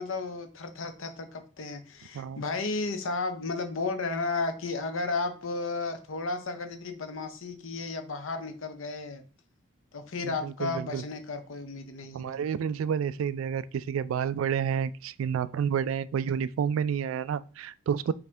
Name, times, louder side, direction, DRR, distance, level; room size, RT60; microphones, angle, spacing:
voice 1, 0.0-9.2 9.9-12.5, left 3 dB, 85° left, 0.7 m, -33 dB
voice 2, 10.2-11.0 12.1-18.1, right 7 dB, 90° right, 0.3 m, -30 dB
5.7 x 2.6 x 3.4 m
head